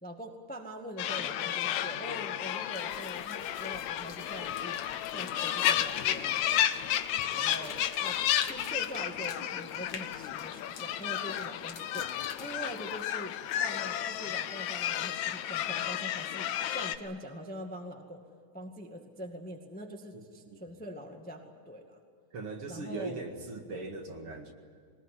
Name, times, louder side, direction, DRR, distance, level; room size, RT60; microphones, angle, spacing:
voice 1, 0.0-4.8 5.1-6.6 7.3-18.2 18.5-22.0 22.7-23.2 23.7-23.8, equal, 5° left, 3 dB, 1.2 m, -43 dB
sound 1, 1.0-17.0, left 11 dB, 80° left, 2.2 m, -32 dB
sound 2, 2.7-13.9, left 6 dB, 50° left, 1.9 m, -49 dB
voice 2, 22.3-24.5, right 3 dB, 50° right, 3 dB, 2.6 m, -39 dB
22.0 x 20.0 x 9.9 m, 2.1 s
omnidirectional pair, 3.4 m